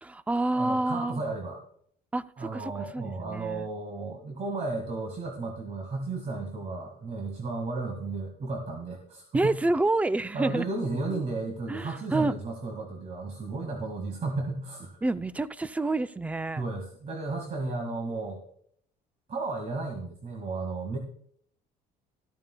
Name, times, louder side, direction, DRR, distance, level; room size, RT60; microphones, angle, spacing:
voice 1, 0.0-1.2 2.1-3.7 9.3-10.7 11.1-11.3 11.7-12.4 15.0-16.6, right 2 dB, 10° right, 14 dB, 0.4 m, -28 dB
voice 2, 0.5-1.6 2.4-9.5 10.3-15.0 16.6-18.4 19.3-21.0, right 3 dB, 40° right, 4 dB, 1.8 m, -33 dB
13.5 x 13.5 x 2.2 m, 0.65 s
cardioid pair, 110°, 17 cm